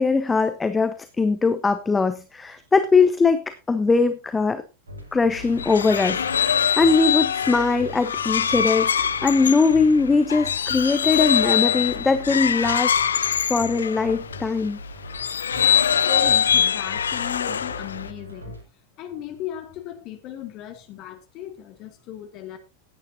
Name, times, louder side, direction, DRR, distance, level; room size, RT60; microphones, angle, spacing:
voice 1, 0.0-4.6 5.1-13.0 13.5-14.8, left 4 dB, 15° left, 1.0 m, -21 dB
sound 1, 4.9-18.6, left 1 dB, 75° right, 5.4 m, -41 dB
sound 2, 5.3-14.5 15.1-18.1, left 8 dB, 70° left, 0.5 m, -23 dB
voice 2, 16.0-18.5 19.0-22.6, left 8 dB, 40° left, 2.1 m, -36 dB
16.5 x 9.7 x 2.7 m
figure-of-eight pair, 90°, 0 cm